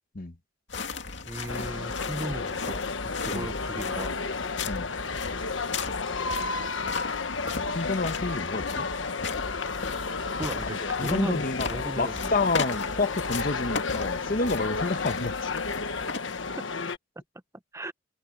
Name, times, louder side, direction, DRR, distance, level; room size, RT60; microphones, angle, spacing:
sound 1, 0.7-16.7, left 4 dB, 70° left, 2.5 m, -37 dB
voice 1, 1.2-2.9 3.2-4.2 10.4-12.3 16.6-16.7 17.7-17.9, right 1 dB, 15° right, 1.0 m, -36 dB
sound 2, 1.5-17.0, left 4 dB, 85° left, 1.3 m, -32 dB
voice 2, 7.7-8.9 10.8-15.5, left 3 dB, 50° left, 1.2 m, -29 dB
head